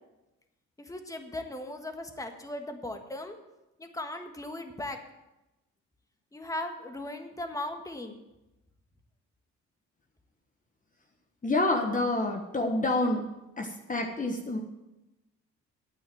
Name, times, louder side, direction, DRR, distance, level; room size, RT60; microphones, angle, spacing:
voice 1, 0.8-3.4 3.8-5.0 6.3-8.2, left 1 dB, 10° left, 5 dB, 1.5 m, -38 dB
voice 2, 11.4-13.3 13.6-14.6, left 2 dB, 25° left, 2 dB, 1.3 m, -28 dB
9.1 x 8.7 x 7.8 m, 0.96 s
cardioid pair, 90°, 30 cm